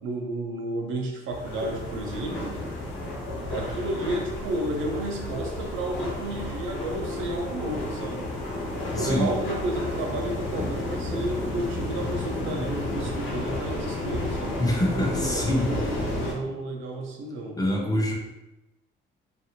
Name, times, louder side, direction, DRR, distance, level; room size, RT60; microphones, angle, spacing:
voice 1, 0.0-2.7 3.5-8.3 8.9-14.6 15.0-17.6, right 1 dB, 80° right, 2 dB, 0.6 m, -32 dB
sound 1, 1.3-16.3, left 1 dB, 85° left, 1.0 m, -32 dB
voice 2, 8.9-9.3 14.6-16.1 17.6-18.1, left 1 dB, 20° left, -1 dB, 0.6 m, -25 dB
2.5 x 2.5 x 2.8 m, 0.98 s
cardioid pair, 90°, 20 cm